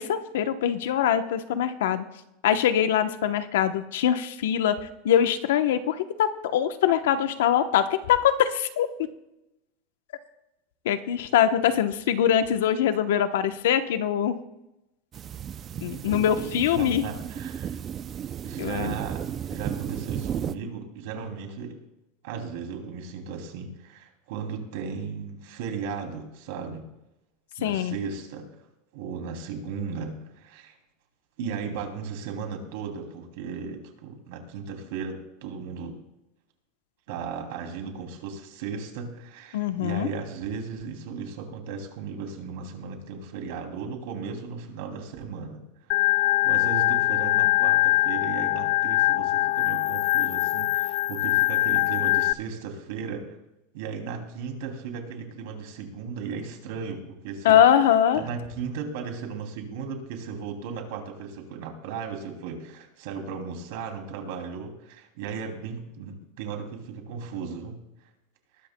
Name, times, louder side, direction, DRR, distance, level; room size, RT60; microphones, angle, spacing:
voice 1, 0.0-2.0 2.4-8.9 10.8-14.4 15.8-17.0 18.6-18.9 27.6-28.0 39.5-40.1 57.4-58.2, left 10 dB, 85° left, 10 dB, 0.9 m, -23 dB
sound 1, 15.1-20.5, right 9 dB, 25° right, 0.4 m, -34 dB
voice 2, 16.8-17.8 18.4-21.8 22.2-26.8 27.6-28.5 28.9-30.8 31.4-36.0 37.1-45.6 46.4-53.4 53.7-57.6 58.1-67.8, right 5 dB, 65° right, 3 dB, 2.8 m, -36 dB
Organ, 45.9-52.3, left 18 dB, 55° left, 0.3 m, -23 dB
20.5 x 13.0 x 2.2 m, 0.90 s
supercardioid pair, 155°, 0 cm